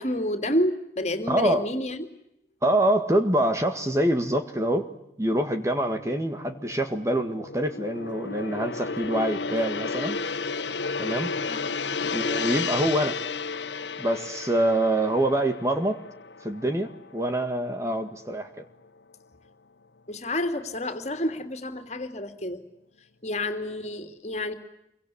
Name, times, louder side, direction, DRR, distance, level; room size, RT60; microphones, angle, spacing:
voice 1, 0.0-2.1 11.5-11.7 17.8-17.9 20.1-22.6 23.2-24.5, left 1 dB, 35° left, 8 dB, 3.0 m, -29 dB
voice 2, 1.3-1.7 2.6-4.9 5.2-10.2 11.0-11.3 12.1-13.2 14.0-16.0 16.4-18.6, right 1 dB, 15° right, 6 dB, 1.8 m, -25 dB
Gong, 5.3-17.8 18.1-18.4, left 4 dB, 75° left, 1.3 m, -33 dB
28.0 x 24.0 x 8.6 m, 0.81 s
head